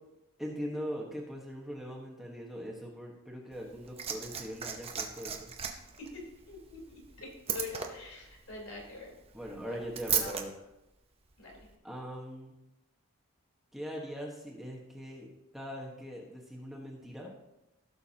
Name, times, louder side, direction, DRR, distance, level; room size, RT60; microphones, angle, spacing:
voice 1, 0.4-5.5 9.3-10.5 11.5-11.6 11.8-12.5 13.7-15.3 15.5-17.3, equal, ahead, -2 dB, 1.3 m, -41 dB
Liquid, 3.5-10.4 11.5-11.6, right 7 dB, 25° right, 0.8 m, -37 dB
voice 2, 6.5-9.1 9.7-9.8 10.1-10.4 11.4-11.5, left 4 dB, 75° left, -1 dB, 3.5 m, -44 dB
16.0 x 7.0 x 2.9 m, 0.92 s
head